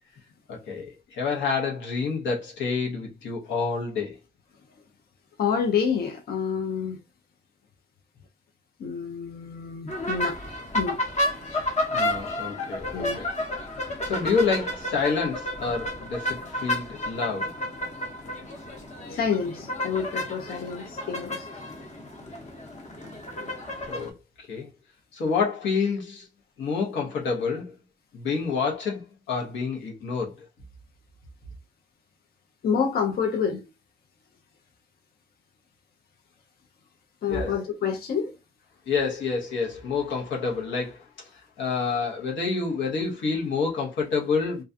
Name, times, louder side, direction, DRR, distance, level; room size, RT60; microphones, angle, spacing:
voice 1, 0.5-4.2 11.9-13.3 14.0-17.5 23.9-24.1 24.4-24.7 25.1-26.3 26.6-27.7 28.1-30.3 37.3-37.6 38.9-41.0 41.6-44.6, left 5 dB, 85° left, 0.9 m, -28 dB
voice 2, 5.4-7.0 8.8-10.4 10.7-11.0 12.9-13.2 19.0-21.5 32.6-33.7 37.2-38.3, left 6 dB, 55° left, 0.5 m, -28 dB
sound 1, 9.9-24.1, left 1 dB, 40° left, 0.9 m, -31 dB
2.4 x 2.2 x 2.5 m
cardioid pair, 65°, 19 cm